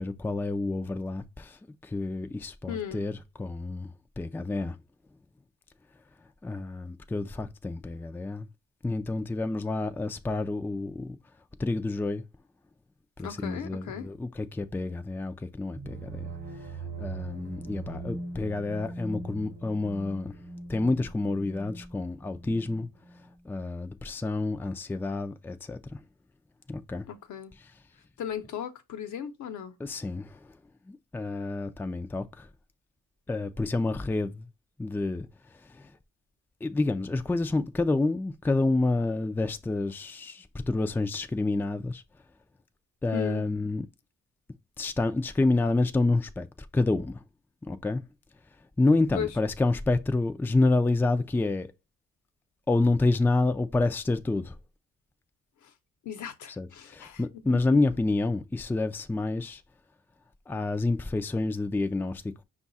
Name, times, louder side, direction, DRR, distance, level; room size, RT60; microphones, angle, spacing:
voice 1, 0.0-4.8 6.4-8.5 8.8-11.2 11.6-12.2 13.2-16.3 17.0-20.4 20.7-22.9 23.5-26.0 26.7-27.1 29.8-30.5 30.9-32.5 33.3-34.5 34.8-35.3 35.5-35.9 36.6-42.0 43.0-43.9 44.8-46.5 46.7-47.2 47.7-48.0 48.8-51.7 52.7-54.6 56.6-59.6 60.5-62.2, left 2 dB, 5° left, 0.4 m, -28 dB
voice 2, 2.7-3.1 13.2-14.1 27.1-27.6 28.2-29.8 43.1-43.4 49.1-49.3 55.6-55.7 56.0-57.2, left 8 dB, 70° left, 0.9 m, -36 dB
sound 1, 15.8-23.4, right 3 dB, 40° right, 0.9 m, -41 dB
5.4 x 2.4 x 4.0 m
cardioid pair, 90°, 30 cm